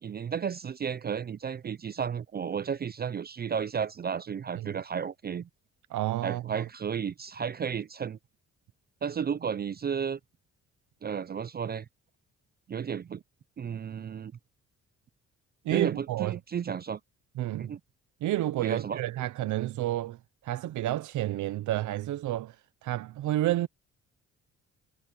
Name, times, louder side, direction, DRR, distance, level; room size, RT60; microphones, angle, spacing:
voice 1, 0.0-5.5 6.2-8.2 9.0-10.2 11.0-11.9 12.7-13.2 13.6-14.3 15.7-17.0 17.6-17.8 18.6-19.0, right 7 dB, 35° right, 0.5 m, -33 dB
voice 2, 5.9-6.6 15.6-16.4 17.4-17.8 18.2-20.2 20.4-22.5 22.8-23.7, right 14 dB, 75° right, 0.8 m, -30 dB
cardioid pair, 90°, 30 cm